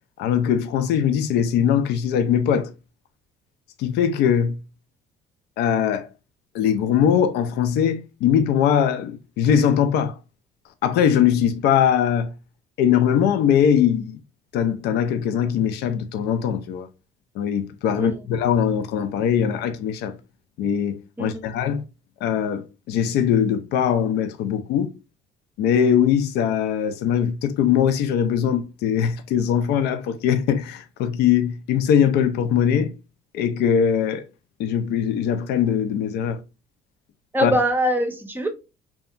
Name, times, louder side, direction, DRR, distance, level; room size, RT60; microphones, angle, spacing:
voice 1, 0.2-2.7 3.8-4.6 5.6-6.1 6.5-10.2 10.8-12.3 12.8-14.2 14.5-16.9 17.4-20.2 20.6-21.8 22.2-24.9 25.6-32.9 33.3-34.3 34.6-36.4 37.4-37.5, left 8 dB, 80° left, 0.5 m, -21 dB
voice 2, 37.3-38.5, equal, 10° right, 0.6 m, -22 dB
2.7 x 2.2 x 2.4 m
cardioid pair, 110°, 17 cm